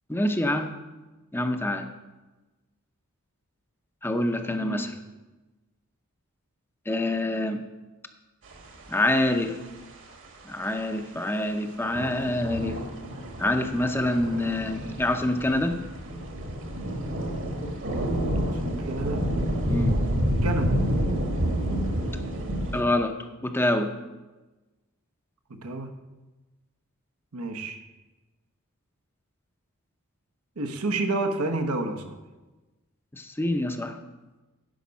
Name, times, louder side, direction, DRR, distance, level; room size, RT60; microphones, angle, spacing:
voice 1, 0.1-0.7 1.3-1.9 4.0-4.9 6.9-7.6 8.9-9.6 10.4-12.8 13.4-15.8 19.7-20.0 22.7-23.2 23.4-23.9 33.1-34.0, left 1 dB, 10° left, 6 dB, 0.6 m, -26 dB
voice 2, 4.6-4.9 18.4-19.3 20.4-20.7 25.5-25.9 27.3-27.8 30.6-32.2, right 2 dB, 85° right, 6 dB, 1.0 m, -30 dB
sound 1, 8.5-9.2 10.9-11.2 11.9-22.8, equal, 60° right, 1.5 m, -29 dB
10.0 x 5.2 x 6.9 m, 1.2 s
head